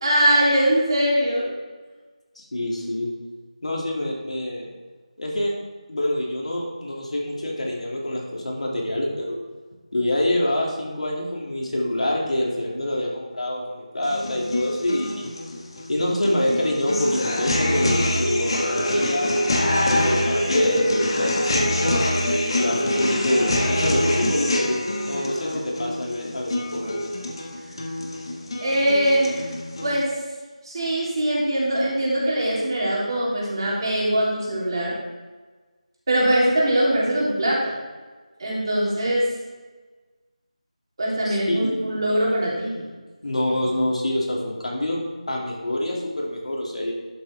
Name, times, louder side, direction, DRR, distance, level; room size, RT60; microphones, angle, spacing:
voice 1, 0.0-1.5 28.6-29.5 29.8-30.1 30.6-34.9 36.1-37.7 38.4-39.2 41.0-42.9, right 1 dB, 40° right, -6 dB, 3.4 m, -22 dB
voice 2, 2.4-3.1 3.6-4.7 5.2-5.5 5.9-9.4 9.9-15.4 15.9-22.0 22.6-24.8 25.1-27.0 41.2-41.9 43.2-46.9, left 1 dB, 65° left, -2 dB, 2.9 m, -26 dB
sound 1, 14.0-30.0, left 1 dB, 45° left, 1.5 m, -25 dB
11.5 x 7.9 x 3.6 m, 1.3 s
figure-of-eight pair, 170°, 4 cm